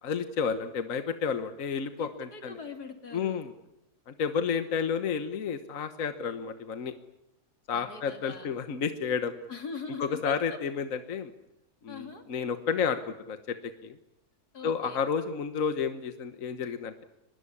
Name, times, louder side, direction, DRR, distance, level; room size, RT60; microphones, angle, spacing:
voice 1, 0.0-2.6 3.1-3.5 4.1-6.9 7.7-9.3 10.0-11.3 11.8-13.6 13.8-13.9 14.6-17.0, left 6 dB, 60° left, 9 dB, 1.6 m, -31 dB
voice 2, 2.0-3.4 7.7-8.5 9.5-10.6 11.9-12.2 14.5-15.0, left 5 dB, 85° left, 6 dB, 3.4 m, -42 dB
24.0 x 21.0 x 9.9 m, 0.87 s
omnidirectional pair, 1.6 m